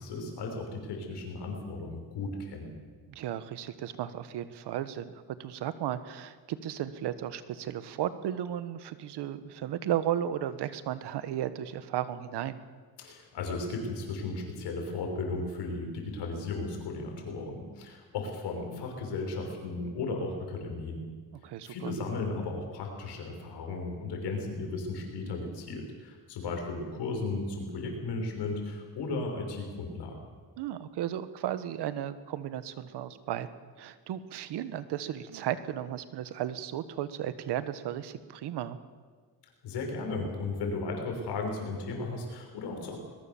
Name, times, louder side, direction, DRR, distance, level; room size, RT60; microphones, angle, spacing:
voice 1, 0.0-2.7 13.0-21.1 21.6-30.2 39.6-43.0, left 3 dB, 85° left, 3 dB, 5.8 m, -35 dB
voice 2, 3.1-5.1 5.4-12.6 21.4-21.9 30.6-33.5 33.8-38.8, right 11 dB, 90° right, 12 dB, 1.4 m, -34 dB
21.5 x 21.5 x 7.2 m, 1.5 s
cardioid pair, 80°, 39 cm